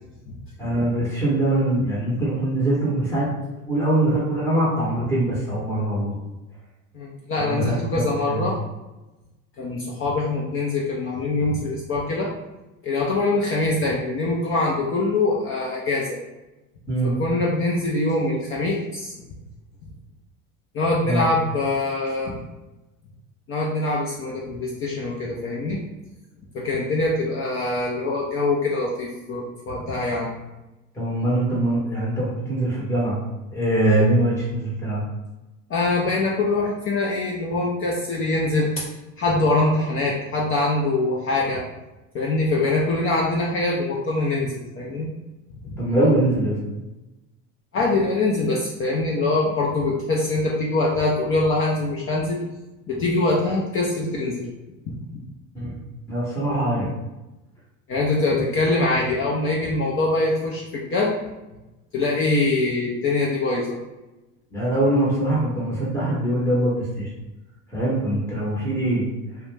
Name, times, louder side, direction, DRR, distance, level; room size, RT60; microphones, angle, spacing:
voice 1, 0.6-3.3 3.7-6.2 7.4-8.5 16.9-17.1 21.0-21.2 30.9-33.2 33.5-35.0 45.8-46.6 55.5-55.7 56.1-56.9 64.5-67.1 67.7-69.1, right 1 dB, 5° left, -6 dB, 0.8 m, -22 dB
voice 2, 6.9-8.6 9.6-12.3 12.8-16.2 17.0-19.1 20.7-22.4 23.5-25.8 26.5-30.3 35.7-38.8 39.2-41.6 42.1-45.1 45.6-45.8 47.7-52.5 52.9-54.5 54.9-55.2 57.9-61.2 61.9-63.8, left 2 dB, 30° left, -3 dB, 0.4 m, -23 dB
2.3 x 2.1 x 3.1 m, 1.0 s
supercardioid pair, 100°, 42 cm